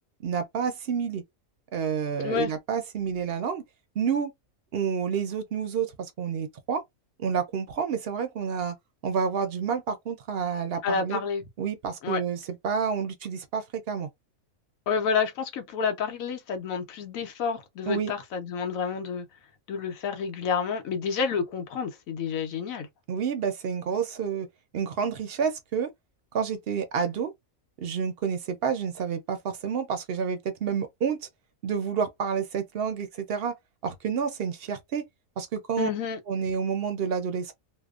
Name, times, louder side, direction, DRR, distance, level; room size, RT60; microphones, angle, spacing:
voice 1, 0.2-1.2 1.7-3.6 4.0-4.3 4.7-6.8 7.2-8.7 9.0-11.2 11.6-14.1 17.9-18.1 23.1-24.5 24.7-25.9 26.3-27.3 27.8-31.2 31.6-33.5 33.8-35.0 35.4-35.9 36.3-37.5, right 6 dB, 65° right, 0.6 m, -29 dB
voice 2, 2.2-2.5 10.8-11.4 12.0-12.2 14.9-19.3 19.7-22.9 35.8-36.2, left 6 dB, 75° left, 1.1 m, -29 dB
2.8 x 2.0 x 2.3 m
omnidirectional pair, 1.5 m